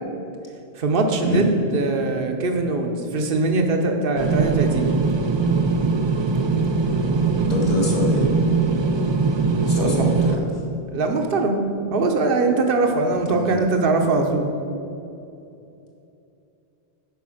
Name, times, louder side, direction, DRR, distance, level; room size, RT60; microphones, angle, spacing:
voice 1, 0.7-4.9 9.8-10.0 10.9-14.5, right 3 dB, 60° right, 4 dB, 1.1 m, -22 dB
sound 1, 4.2-10.4, right 4 dB, 40° right, 0.4 m, -21 dB
voice 2, 7.4-8.3 9.6-10.6 13.1-13.6, left 1 dB, 40° left, -1 dB, 1.6 m, -25 dB
9.3 x 5.3 x 6.3 m, 2.7 s
omnidirectional pair, 1.1 m